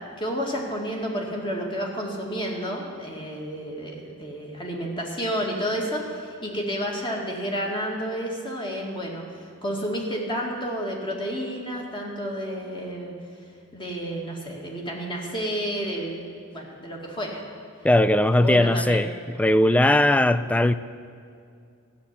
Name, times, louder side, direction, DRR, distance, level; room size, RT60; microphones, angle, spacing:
voice 1, 0.0-9.2 9.6-13.1 13.7-17.4 18.4-19.0, equal, 20° left, -1 dB, 2.2 m, -30 dB
voice 2, 17.8-19.1 19.4-20.7, left 1 dB, 5° left, 13 dB, 0.3 m, -19 dB
14.5 x 7.2 x 9.8 m, 2.4 s
head